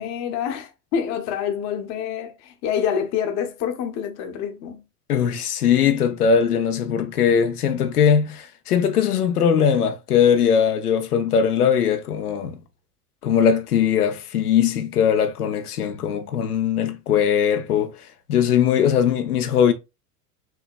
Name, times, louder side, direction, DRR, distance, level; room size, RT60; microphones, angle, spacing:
voice 1, 0.0-4.8, left 8 dB, 35° left, 1.0 m, -27 dB
voice 2, 5.1-12.6 13.2-19.7, left 7 dB, 70° left, 0.8 m, -20 dB
5.7 x 3.1 x 2.4 m
figure-of-eight pair, 80°, 48 cm